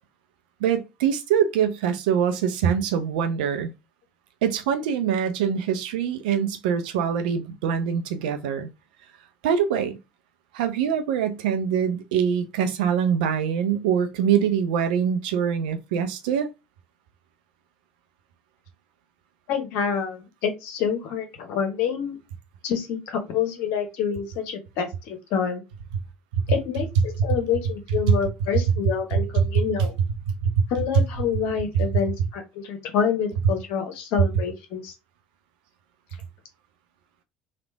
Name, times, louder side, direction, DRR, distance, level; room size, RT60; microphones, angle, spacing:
voice 1, 0.6-3.7 4.4-8.7 9.4-10.0 10.5-16.5 26.3-26.4 29.3-29.6 30.3-30.7, right 8 dB, 65° right, 0.5 m, -24 dB
voice 2, 19.5-22.2 22.6-25.6 26.5-29.9 30.7-34.9, left 7 dB, 55° left, 0.9 m, -27 dB
3.2 x 2.4 x 3.3 m
figure-of-eight pair, 60°, 5 cm